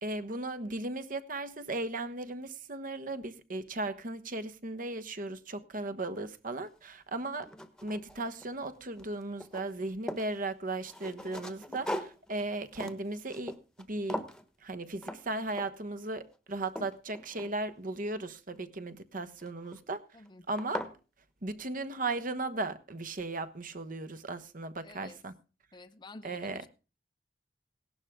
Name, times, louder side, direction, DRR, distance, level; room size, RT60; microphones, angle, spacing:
voice 1, 0.0-7.5 7.8-14.2 14.6-20.0 20.5-20.9 21.4-25.3 26.2-26.6, right 2 dB, 50° right, 1.2 m, -36 dB
sound 1, 6.7-6.8 7.2-8.7 9.0-10.3 10.8-13.8 14.1-14.4 15.0-15.2 15.5-15.9 16.3-17.9 19.4-19.8 20.2-20.3 20.6-21.0, left 1 dB, 5° left, 1.2 m, -40 dB
voice 2, 24.8-25.2 25.7-26.7, left 2 dB, 25° left, 0.7 m, -51 dB
17.5 x 12.0 x 3.7 m
head